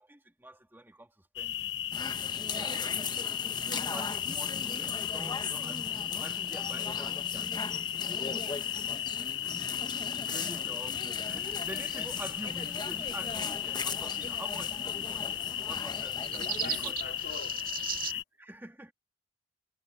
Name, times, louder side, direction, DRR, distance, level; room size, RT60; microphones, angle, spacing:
voice 1, 0.0-1.8 2.4-8.9 10.2-11.0 11.3-15.3 15.5-16.4 16.8-17.4 18.0-18.9, right 1 dB, 10° right, 1.9 m, -48 dB
sound 1, 1.4-18.2, left 11 dB, 70° left, 1.0 m, -35 dB
sound 2, 1.9-16.9, left 4 dB, 25° left, 1.1 m, -39 dB
voice 2, 9.8-10.4 16.3-17.7, left 4 dB, 55° left, 3.3 m, -46 dB
sound 3, 11.3-18.1, right 9 dB, 50° right, 2.3 m, -42 dB
head